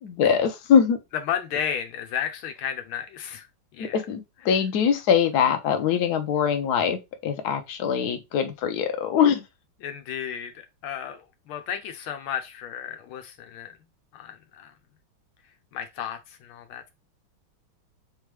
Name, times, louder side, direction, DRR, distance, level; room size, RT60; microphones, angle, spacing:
voice 1, 0.0-1.0 3.8-9.4, left 7 dB, 60° left, 1.1 m, -23 dB
voice 2, 1.1-3.5 3.7-4.0 9.8-13.8 14.1-14.7 15.7-16.9, left 9 dB, 90° left, 1.6 m, -33 dB
3.7 x 3.5 x 3.2 m
omnidirectional pair, 2.3 m